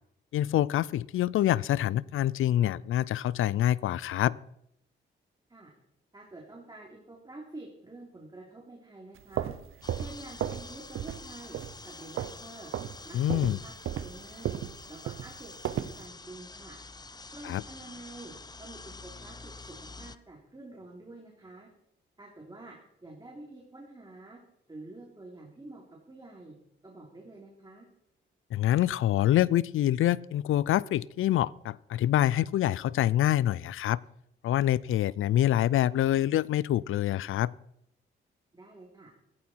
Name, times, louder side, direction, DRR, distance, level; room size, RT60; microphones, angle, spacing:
voice 1, 0.3-4.4 13.1-13.6 17.4-17.6 28.5-34.0 34.4-37.5, left 12 dB, 80° left, 22 dB, 0.5 m, -26 dB
voice 2, 6.1-9.5 10.0-11.6 11.8-12.7 13.0-14.6 14.9-16.8 17.3-18.3 18.6-21.7 22.2-22.8 23.0-24.4 24.7-26.6 26.8-27.9 38.5-39.1, right 2 dB, 20° right, -1 dB, 3.5 m, -48 dB
sound 1, 9.2-10.7 11.0-11.3 11.5-12.4 12.7-13.0 13.3-16.0, right 10 dB, 85° right, 0.8 m, -34 dB
sound 2, 9.8-20.2, left 3 dB, 20° left, 0.7 m, -47 dB
15.5 x 15.0 x 4.6 m, 0.75 s
cardioid pair, 85°, 21 cm